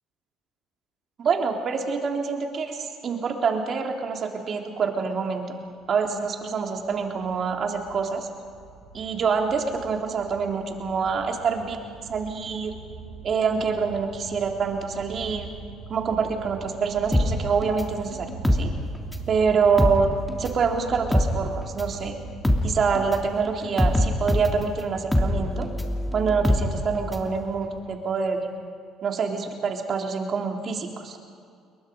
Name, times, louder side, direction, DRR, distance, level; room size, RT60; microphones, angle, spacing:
voice 1, 1.2-5.4 5.9-8.3 8.9-11.8 12.1-12.7 13.2-15.5 15.9-18.7 19.3-20.1 20.4-22.2 22.6-25.7 26.1-28.5 29.0-31.2, right 5 dB, 50° right, 2 dB, 3.5 m, -26 dB
sound 1, 5.7-23.3, right 5 dB, 85° right, 4.6 m, -42 dB
sound 2, 17.1-19.3 19.6-27.3 27.6-27.7, left 1 dB, 10° left, 3.2 m, -24 dB
29.5 x 22.0 x 5.3 m, 2.3 s
hypercardioid pair, 60°, 0 cm